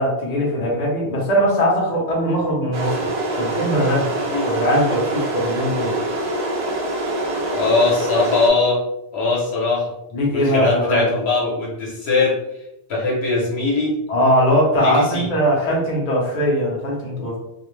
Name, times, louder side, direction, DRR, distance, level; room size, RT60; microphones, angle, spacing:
voice 1, 0.0-3.0 3.4-4.1 4.4-5.9 10.1-11.1 14.1-17.4, equal, 40° left, -3 dB, 0.7 m, -20 dB
sound 1, 2.7-8.5, right 2 dB, 55° right, 0.3 m, -25 dB
voice 2, 7.5-8.8 9.1-9.9 10.3-12.4 12.9-13.9 14.8-15.3, left 3 dB, 70° left, -4 dB, 1.0 m, -20 dB
2.4 x 2.0 x 3.1 m, 0.89 s
omnidirectional pair, 1.2 m